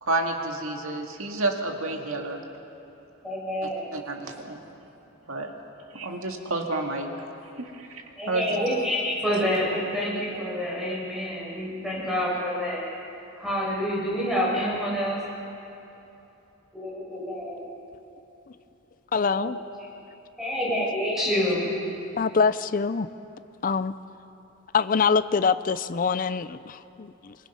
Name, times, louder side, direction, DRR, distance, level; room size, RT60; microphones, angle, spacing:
voice 1, 0.0-2.4 3.6-4.6 5.3-5.5 5.9-7.1 7.6-8.6, right 2 dB, 70° right, 3 dB, 2.0 m, -30 dB
voice 2, 3.2-3.9 8.2-12.8 13.3-15.2 16.7-17.6 19.3-19.5 20.4-21.7, equal, ahead, -6 dB, 6.5 m, -27 dB
voice 3, 19.1-19.6 20.8-20.9 22.1-23.1 23.6-23.9 24.7-27.4, left 5 dB, 40° left, 14 dB, 0.4 m, -24 dB
25.0 x 21.5 x 5.6 m, 2.9 s
head